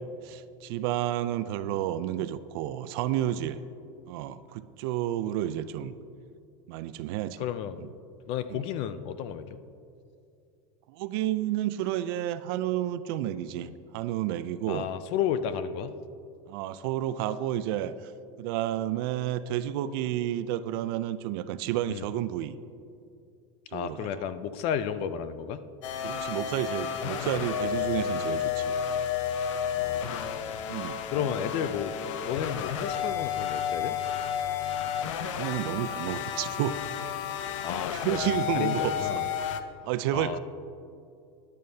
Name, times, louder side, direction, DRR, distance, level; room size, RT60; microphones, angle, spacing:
voice 1, 0.0-3.6 4.1-5.9 6.7-7.4 7.8-7.9 8.5-8.6 10.9-14.9 16.5-18.1 18.4-22.6 23.7-24.2 26.0-28.7 30.7-31.3 35.3-36.8 37.9-39.2 39.8-40.4, right 12 dB, 50° right, 13 dB, 0.4 m, -31 dB
voice 2, 7.4-7.9 8.3-9.6 13.6-13.7 14.7-15.9 21.9-22.1 23.7-25.6 29.7-30.6 31.1-31.9 32.3-34.0 37.6-39.2 40.1-40.4, left 9 dB, 35° left, 13 dB, 0.4 m, -33 dB
sound 1, 25.8-39.6, left 8 dB, 75° left, 0.7 m, -31 dB
14.0 x 10.5 x 2.8 m, 2.5 s
supercardioid pair, 170°, 16 cm